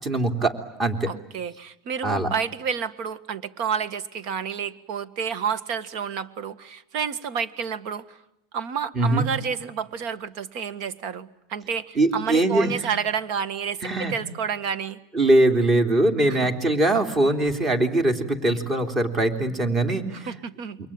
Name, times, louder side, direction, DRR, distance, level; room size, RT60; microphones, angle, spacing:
voice 1, 0.0-1.1 2.0-2.3 8.9-9.2 12.0-12.7 13.8-14.1 15.1-20.3, right 2 dB, 25° right, 7 dB, 3.3 m, -22 dB
voice 2, 1.1-8.2 8.5-15.0 16.3-16.5 20.1-20.8, right 7 dB, 55° right, 14 dB, 1.6 m, -30 dB
28.5 x 23.5 x 8.8 m, 0.83 s
supercardioid pair, 145°, 0 cm